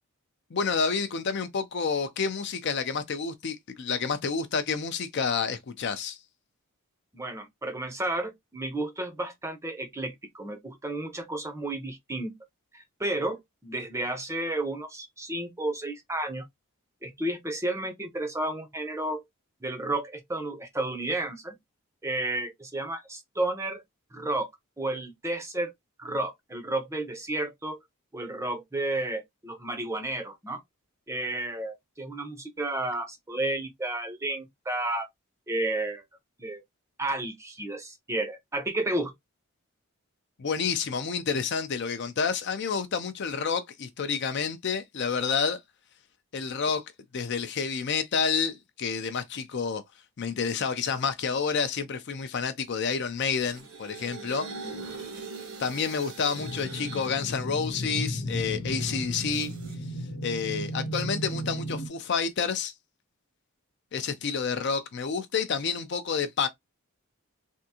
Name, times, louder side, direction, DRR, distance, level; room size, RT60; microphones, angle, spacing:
voice 1, 0.5-6.2 40.4-45.6 46.3-46.8 47.1-49.8 50.2-54.5 55.6-59.5 60.2-62.7 63.9-66.5, left 5 dB, 50° left, 0.4 m, -29 dB
voice 2, 7.1-12.3 12.7-16.5 17.0-19.2 19.6-21.5 22.0-23.8 24.1-24.5 24.8-25.7 26.0-27.8 28.1-30.6 31.1-35.1 35.5-36.0 36.4-36.6 37.0-39.1, right 2 dB, 10° right, 0.6 m, -32 dB
sound 1, 53.2-57.1 57.7-59.7, right 4 dB, 65° right, 1.0 m, -42 dB
sound 2, 56.4-61.9, equal, 70° left, 0.9 m, -34 dB
3.5 x 2.5 x 2.7 m
head